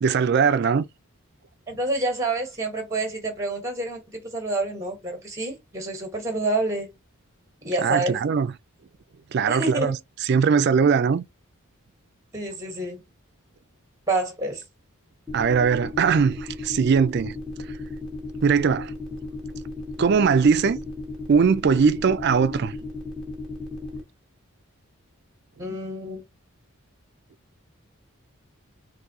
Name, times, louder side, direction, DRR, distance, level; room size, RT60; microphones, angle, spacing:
voice 1, 0.0-0.9 7.8-8.5 9.3-10.0 10.2-11.2 15.3-17.4 18.4-18.9 20.0-20.8 21.3-22.7, right 6 dB, 50° right, 0.3 m, -20 dB
voice 2, 1.7-6.9 7.6-8.2 9.5-9.9 12.3-13.0 14.1-14.6 25.6-26.2, right 2 dB, 15° right, 1.2 m, -28 dB
sound 1, 15.3-24.0, left 2 dB, 5° left, 0.9 m, -35 dB
3.9 x 2.6 x 2.7 m
head